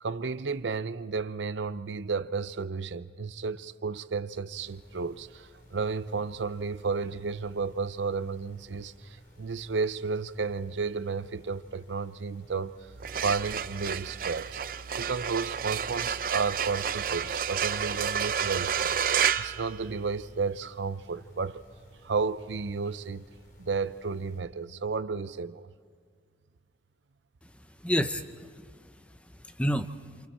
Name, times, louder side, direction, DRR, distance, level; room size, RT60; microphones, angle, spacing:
voice 1, 0.0-12.7 13.2-14.6 14.9-21.6 22.0-23.3 23.6-25.6, right 4 dB, 90° right, 0.6 m, -32 dB
sound 1, 4.5-24.4, equal, 55° left, 4.2 m, -57 dB
sound 2, 12.9-20.4, right 8 dB, 50° right, 0.5 m, -30 dB
voice 2, 27.4-30.3, equal, 5° left, 0.6 m, -32 dB
28.0 x 28.0 x 4.3 m
head